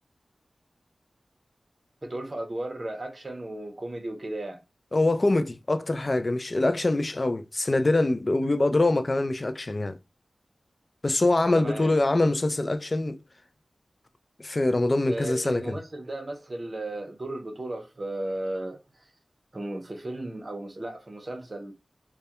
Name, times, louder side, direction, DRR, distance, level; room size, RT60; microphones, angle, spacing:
voice 1, 2.0-4.6 11.5-11.9 15.1-19.1 19.5-21.7, right 1 dB, 40° right, 0.6 m, -35 dB
voice 2, 4.9-10.0 11.0-13.2 14.4-15.8, left 2 dB, 40° left, 0.3 m, -24 dB
2.2 x 2.1 x 2.8 m
wide cardioid pair, 70°, 0 cm